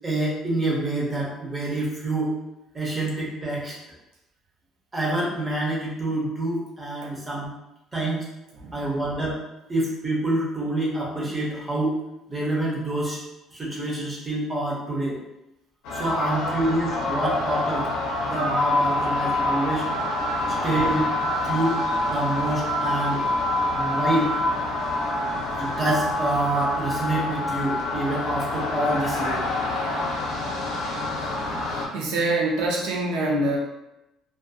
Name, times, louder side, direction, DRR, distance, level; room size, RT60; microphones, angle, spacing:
voice 1, 0.0-2.3 2.7-3.8 4.9-7.5 7.9-8.2 8.7-9.4 9.7-11.9 12.3-13.2 13.5-15.2 15.9-17.9 18.3-19.8 20.6-21.1 21.4-21.8 22.1-23.3 23.8-24.4 25.6-29.5, right 1 dB, 15° right, -4 dB, 0.6 m, -27 dB
sound 1, 15.8-31.9, left 1 dB, 80° left, 0.5 m, -26 dB
voice 2, 31.9-33.6, right 2 dB, 75° right, -2 dB, 0.6 m, -25 dB
2.4 x 2.3 x 2.6 m, 0.92 s
cardioid pair, 180°, 0 cm